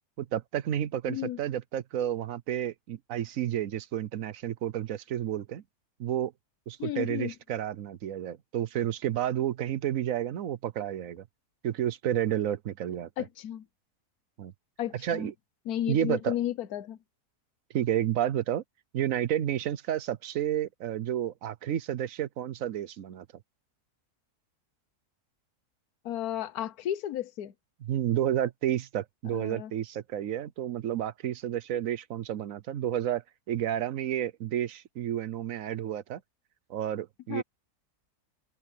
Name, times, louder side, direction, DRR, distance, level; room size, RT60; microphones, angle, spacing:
voice 1, 0.2-5.6 6.0-6.3 6.7-11.2 11.6-13.1 14.4-14.5 15.0-15.3 15.9-16.3 17.7-18.6 18.9-23.3 27.8-33.2 33.5-36.2 36.7-37.4, right 11 dB, 65° right, 1.1 m, -31 dB
voice 2, 1.1-1.4 6.8-7.3 13.2-13.6 14.8-15.3 15.6-17.0 26.0-27.5 29.3-29.7 37.3-37.4, left 12 dB, 70° left, 1.4 m, -33 dB
omnidirectional pair, 1.7 m